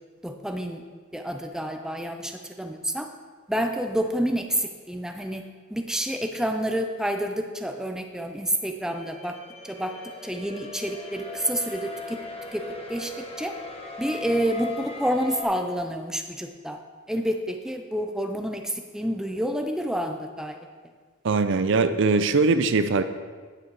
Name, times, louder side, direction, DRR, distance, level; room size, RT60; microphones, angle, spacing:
voice 1, 0.2-0.8 1.1-3.1 3.5-9.4 9.6-10.0 10.2-12.2 12.5-13.5 14.0-16.8 17.1-20.6, right 1 dB, 5° right, 5 dB, 0.5 m, -29 dB
sound 1, 8.3-15.4, left 3 dB, 30° left, 1.2 m, -38 dB
voice 2, 21.2-23.0, right 4 dB, 60° right, 11 dB, 0.5 m, -21 dB
9.2 x 8.4 x 4.7 m, 1.5 s
head